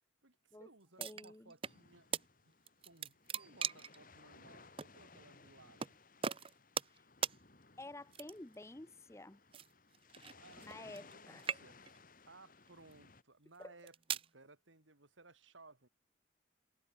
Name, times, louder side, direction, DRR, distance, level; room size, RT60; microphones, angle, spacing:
voice 1, 0.2-2.1 2.4-2.5 2.8-5.9 10.4-15.9, right 3 dB, 85° right, 3.9 m, -61 dB
voice 2, 1.0-1.5 6.9-7.0 7.8-9.4 10.6-11.5 13.6-13.7, left 2 dB, 15° left, 0.7 m, -51 dB
sound 1, 1.0-1.8 2.1-2.3 2.7-4.0 4.8-4.9 5.8-5.9 6.2-7.0 7.2-7.4 8.1-8.6 9.5-11.1 11.4-12.0 12.7-12.9 13.6-14.3, right 7 dB, 30° right, 0.5 m, -40 dB
sound 2, 1.6-13.2, left 4 dB, 45° left, 2.5 m, -61 dB
head